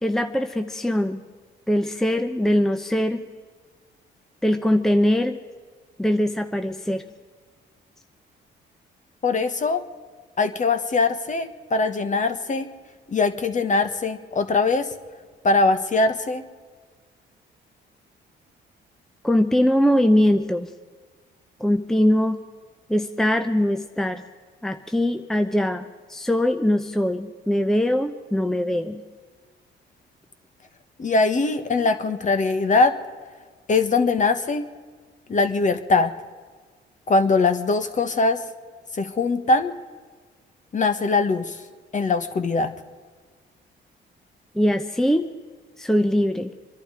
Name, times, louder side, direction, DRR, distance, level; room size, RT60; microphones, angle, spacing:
voice 1, 0.0-1.2 1.7-3.2 4.4-5.4 6.0-7.0 19.2-20.7 21.6-22.4 22.9-24.2 24.6-25.8 26.1-29.0 44.5-45.3 45.8-46.5, left 1 dB, ahead, 7 dB, 0.8 m, -21 dB
voice 2, 9.2-9.8 10.4-12.7 13.1-14.9 15.4-16.4 31.0-33.0 33.7-34.6 35.3-36.1 37.1-38.4 39.0-39.7 40.7-41.6 41.9-42.7, left 3 dB, 40° left, 8 dB, 1.5 m, -21 dB
25.5 x 11.5 x 5.0 m, 1.5 s
cardioid pair, 90°, 20 cm